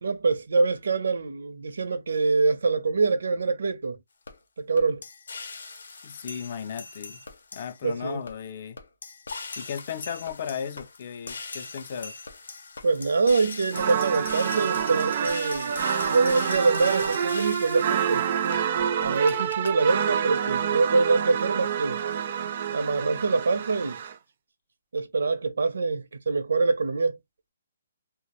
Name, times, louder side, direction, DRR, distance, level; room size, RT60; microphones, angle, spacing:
voice 1, 0.0-4.0 4.6-5.0 7.8-8.2 12.8-15.7 16.0-18.3 19.0-22.0 22.7-24.0 24.9-27.2, right 4 dB, 85° right, 0.5 m, -25 dB
sound 1, 4.3-4.4 4.8-7.8 8.3-8.4 8.8-19.7, left 4 dB, 90° left, 0.6 m, -40 dB
voice 2, 6.0-7.2 7.5-8.8 9.6-12.2, left 7 dB, 35° left, 0.4 m, -35 dB
sound 2, 13.7-24.1, right 8 dB, 35° right, 0.3 m, -28 dB
2.3 x 2.0 x 2.9 m
hypercardioid pair, 175°, 0 cm